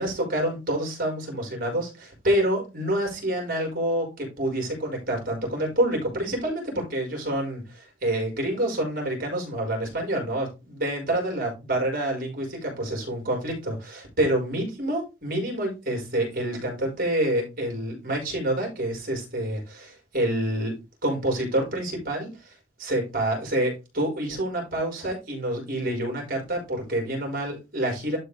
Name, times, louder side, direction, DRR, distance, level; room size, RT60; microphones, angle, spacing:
voice 1, 0.0-20.7 21.0-28.2, right 1 dB, 45° right, 0 dB, 4.9 m, -27 dB
12.0 x 4.6 x 3.4 m, 0.27 s
head